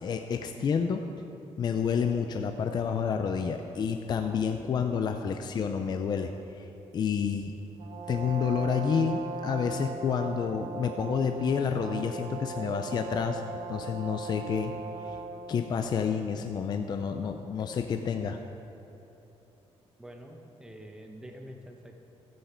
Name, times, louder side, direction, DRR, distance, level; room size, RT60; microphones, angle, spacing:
voice 1, 0.0-1.0 1.6-6.7 6.9-7.5 8.1-13.4 13.7-14.7 15.0-15.2 15.5-18.4, left 6 dB, 40° left, 6 dB, 0.4 m, -29 dB
Brass instrument, 7.8-15.5, right 4 dB, 60° right, 1.1 m, -39 dB
voice 2, 20.0-21.9, equal, 5° right, 2 dB, 1.0 m, -46 dB
13.5 x 8.0 x 4.4 m, 3.0 s
cardioid pair, 150°, 11 cm